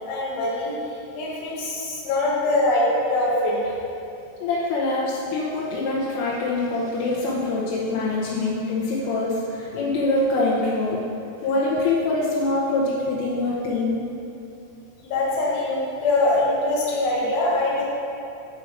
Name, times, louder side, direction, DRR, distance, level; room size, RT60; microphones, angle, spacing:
voice 1, 0.1-3.7 15.0-17.8, left 2 dB, 60° left, -6 dB, 3.0 m, -23 dB
voice 2, 4.4-11.0 11.4-14.0, left 2 dB, 80° left, -6 dB, 3.3 m, -24 dB
8.0 x 5.4 x 5.1 m, 2.7 s
omnidirectional pair, 5.9 m